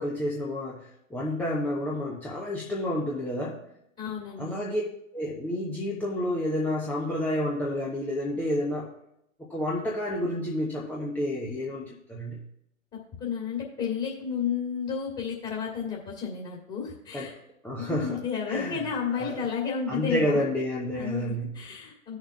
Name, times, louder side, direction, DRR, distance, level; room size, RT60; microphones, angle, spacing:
voice 1, 0.0-3.6 4.4-4.8 5.1-8.9 9.5-12.4 17.1-17.3 17.6-18.2 18.5-18.8 19.2-19.4 19.9-21.5, left 1 dB, 5° left, -4 dB, 0.8 m, -30 dB
voice 2, 4.0-4.6 13.2-17.3 17.9-20.4 20.8-22.2, left 6 dB, 25° left, -3 dB, 2.5 m, -32 dB
18.0 x 6.6 x 2.3 m, 0.78 s
figure-of-eight pair, 110°, 42 cm